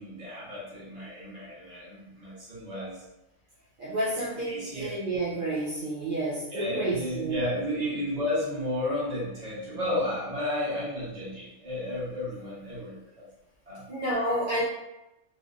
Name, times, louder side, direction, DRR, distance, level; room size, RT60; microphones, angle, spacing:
voice 1, 0.0-3.0 4.5-4.9 6.5-13.0 13.7-13.8, left 1 dB, 30° right, -8 dB, 1.2 m, -32 dB
voice 2, 3.8-7.4 13.9-14.6, right 1 dB, 55° right, -8 dB, 0.6 m, -30 dB
3.4 x 2.5 x 2.5 m, 0.96 s
omnidirectional pair, 1.5 m